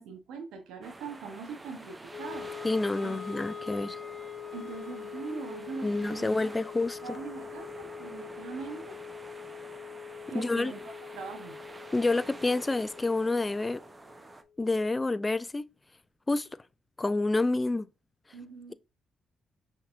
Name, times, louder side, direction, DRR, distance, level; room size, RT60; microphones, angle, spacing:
voice 1, 0.0-2.5 3.0-3.2 4.5-6.5 7.0-9.0 10.3-11.6 18.3-18.7, right 5 dB, 85° right, 0.9 m, -42 dB
sound 1, 0.8-14.4, right 2 dB, 20° right, 0.7 m, -48 dB
Wind instrument woodwind instrument, 2.1-14.3, left 7 dB, 45° left, 0.7 m, -43 dB
voice 2, 2.6-4.0 5.8-7.0 10.3-10.7 11.9-13.8 14.6-15.7 16.3-16.5 17.0-17.9, left 2 dB, 25° left, 0.4 m, -28 dB
5.5 x 3.4 x 2.5 m
supercardioid pair, 65°, 0 cm